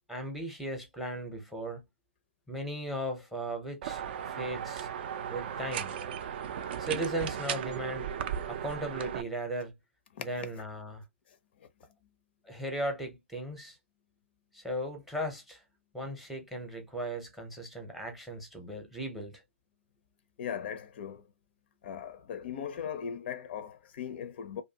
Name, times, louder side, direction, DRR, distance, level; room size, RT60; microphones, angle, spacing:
voice 1, 0.1-1.8 2.5-4.0 4.4-4.9 5.3-5.9 6.8-8.1 8.5-9.7 10.2-11.0 12.5-13.8 14.5-15.6 15.9-19.4, right 1 dB, ahead, 0.6 m, -37 dB
sound 1, 3.8-9.2, right 8 dB, 45° right, 0.4 m, -36 dB
voice 2, 10.1-10.5 20.4-21.2 21.8-24.6, left 8 dB, 45° left, 0.4 m, -38 dB
2.5 x 2.2 x 2.7 m
hypercardioid pair, 135°, 8 cm